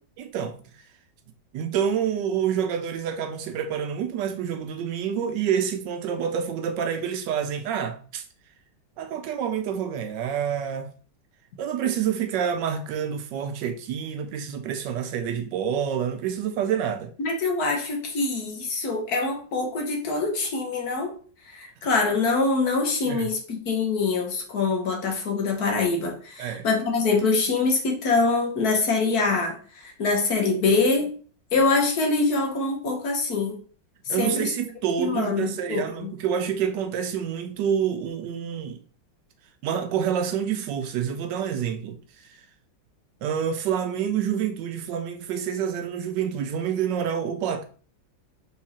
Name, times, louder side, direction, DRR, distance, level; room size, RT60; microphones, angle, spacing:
voice 1, 0.2-0.6 1.5-8.2 9.0-10.9 11.6-17.1 23.1-23.3 26.4-26.7 34.1-38.8 39.6-42.0 43.2-47.6, right 8 dB, 75° right, 1.2 m, -27 dB
voice 2, 17.2-21.1 21.5-31.1 31.5-33.6 34.1-34.5 35.0-36.1, left 3 dB, 60° left, 1.4 m, -24 dB
4.6 x 3.9 x 2.8 m
omnidirectional pair, 2.0 m